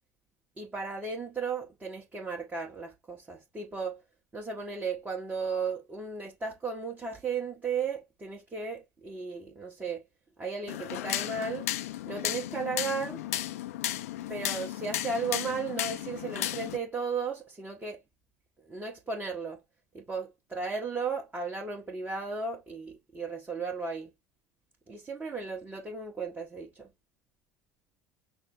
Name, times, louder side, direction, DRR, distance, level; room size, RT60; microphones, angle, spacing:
voice 1, 0.6-4.0 4.3-10.0 10.4-11.7 12.1-13.2 14.3-18.0 18.7-19.6 19.9-24.1 24.9-26.9, right 4 dB, 20° right, 1.3 m, -35 dB
sound 1, 10.7-16.8, left 13 dB, 70° left, 0.5 m, -34 dB
5.8 x 2.1 x 4.1 m
figure-of-eight pair, 70°, 8 cm